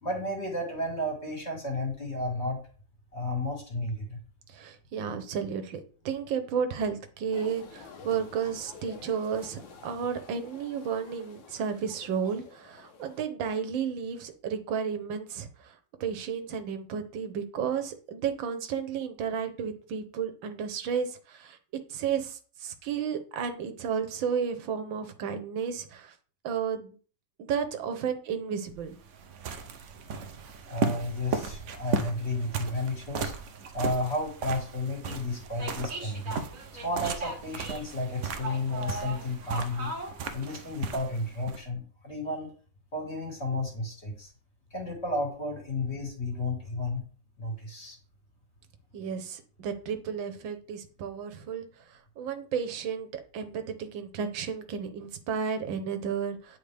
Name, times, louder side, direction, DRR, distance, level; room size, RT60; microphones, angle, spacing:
voice 1, 0.0-2.6 3.1-4.2 30.7-33.3 33.7-36.3 36.8-39.9 40.3-42.5 42.9-44.3 44.7-47.0 47.4-48.0, left 1 dB, 35° left, -1 dB, 2.3 m, -32 dB
voice 2, 4.5-15.7 16.0-21.6 21.9-26.1 26.4-26.9 27.4-28.9 48.9-51.6 51.9-56.6, right 7 dB, 85° right, 8 dB, 1.6 m, -32 dB
sound 1, 7.3-13.2, left 5 dB, 85° left, 1.7 m, -49 dB
sound 2, 28.7-41.6, right 5 dB, 65° right, 0.7 m, -36 dB
sound 3, 35.1-35.2 35.5-40.2, right 2 dB, 45° right, 1.7 m, -39 dB
9.4 x 4.0 x 3.4 m, 0.41 s
omnidirectional pair, 2.0 m